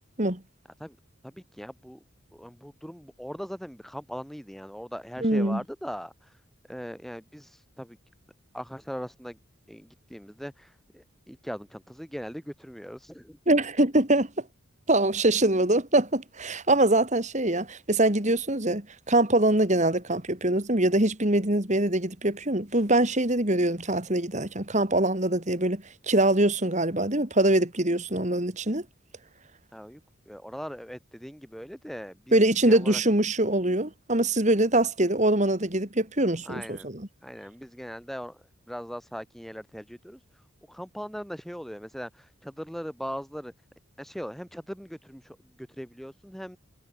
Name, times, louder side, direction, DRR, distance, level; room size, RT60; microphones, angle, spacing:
voice 1, 1.2-2.0 2.3-6.1 6.7-7.5 7.8-8.0 8.5-9.4 9.7-10.7 10.9-13.4 29.7-30.0 30.3-32.4 32.6-33.0 36.5-36.9 37.2-38.4 38.7-40.2 40.7-43.5 44.0-45.4 45.8-46.6, equal, ahead, 3.5 m, -39 dB
voice 2, 5.2-5.6 13.5-14.3 14.9-28.8 32.3-37.1, right 1 dB, 35° right, 2.8 m, -23 dB
head